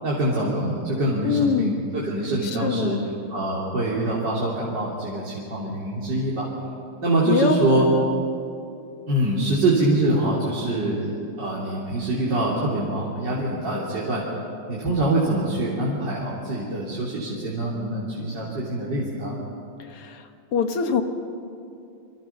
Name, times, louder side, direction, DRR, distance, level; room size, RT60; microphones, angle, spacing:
voice 1, 0.0-3.0 3.3-6.5 7.0-7.8 9.1-14.2 14.7-19.4, right 2 dB, 50° right, -6 dB, 3.9 m, -24 dB
voice 2, 1.2-1.8 2.4-3.1 7.3-8.1 19.9-21.0, left 5 dB, 85° left, 6 dB, 2.5 m, -24 dB
28.0 x 25.5 x 6.0 m, 2.6 s
omnidirectional pair, 2.4 m